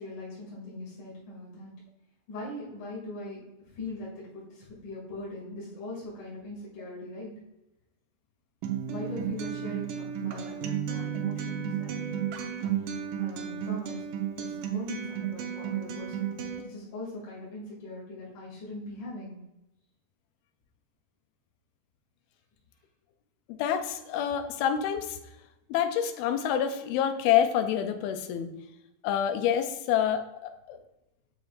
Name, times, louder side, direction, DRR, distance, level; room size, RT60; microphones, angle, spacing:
voice 1, 0.0-1.7 2.3-7.3 8.9-12.1 12.7-14.1 14.4-16.3 16.6-19.4, left 2 dB, 55° left, -7 dB, 3.7 m, -41 dB
Acoustic guitar, 8.6-16.6, right 9 dB, 85° right, 1.9 m, -33 dB
voice 2, 23.5-25.2 25.7-28.5 29.0-30.8, left 9 dB, 80° left, 7 dB, 2.4 m, -27 dB
8.0 x 7.0 x 2.5 m, 0.93 s
omnidirectional pair, 4.7 m